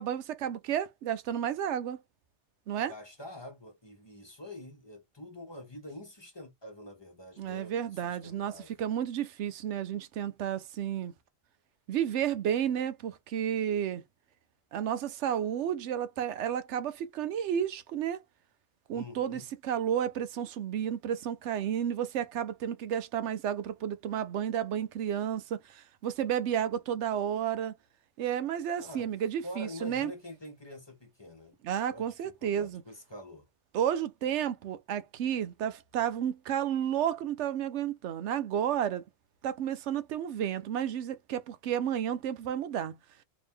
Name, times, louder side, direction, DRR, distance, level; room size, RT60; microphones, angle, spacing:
voice 1, 0.0-2.0 2.7-2.9 7.4-11.1 11.9-14.0 14.7-18.2 18.9-27.7 28.2-30.1 31.6-32.8 33.7-39.0 39.4-43.0, right 9 dB, 85° right, 0.9 m, -32 dB
voice 2, 2.9-8.7 18.9-19.4 28.8-29.1 29.4-31.6 31.9-33.5, left 1 dB, 25° left, 0.9 m, -46 dB
2.9 x 2.9 x 3.4 m
omnidirectional pair, 1.2 m